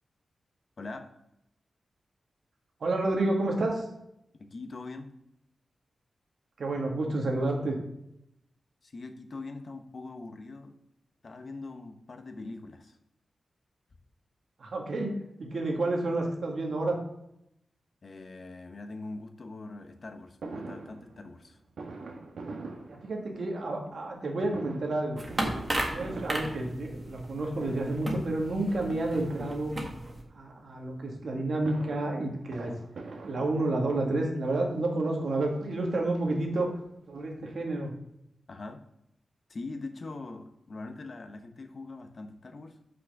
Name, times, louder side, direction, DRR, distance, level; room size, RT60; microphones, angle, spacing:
voice 1, 0.8-1.1 4.4-5.1 8.8-10.8 11.2-13.0 18.0-21.6 38.5-38.8 39.5-42.8, left 3 dB, 50° left, 6 dB, 1.0 m, -42 dB
voice 2, 2.8-3.9 6.6-7.8 14.6-17.0 22.9-25.2 25.9-29.7 30.3-32.8 33.2-36.7 37.1-37.9, right 2 dB, 70° right, 1 dB, 1.7 m, -30 dB
Fireworks, 20.4-23.6 24.4-27.3 27.6-28.2 29.1-30.2 31.4-34.0 34.8-34.9 35.2-35.3 35.6-36.9 37.2-37.3 37.4-37.5, right 3 dB, 85° right, 1.3 m, -44 dB
sound 1, 25.2-30.2, right 1 dB, 25° right, 1.6 m, -35 dB
6.2 x 5.9 x 5.9 m, 0.81 s
wide cardioid pair, 105°, 0 cm